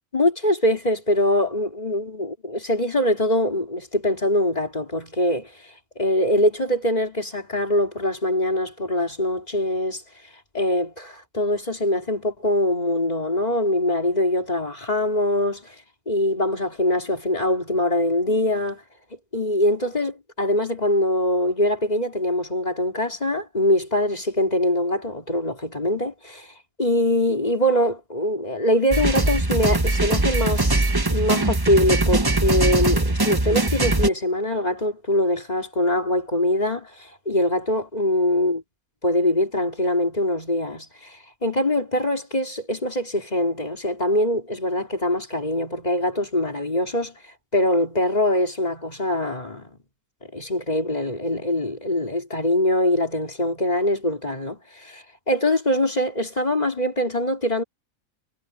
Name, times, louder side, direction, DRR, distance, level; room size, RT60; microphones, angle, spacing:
voice 1, 0.1-5.5 6.0-10.0 10.5-15.6 16.1-18.8 19.3-26.5 26.8-38.6 39.0-41.2 41.4-47.1 47.5-49.7 50.3-57.6, left 1 dB, 30° left, 3.4 m, -23 dB
sound 1, 28.9-34.1, right 2 dB, 15° right, 1.1 m, -21 dB
omnidirectional pair, 1.4 m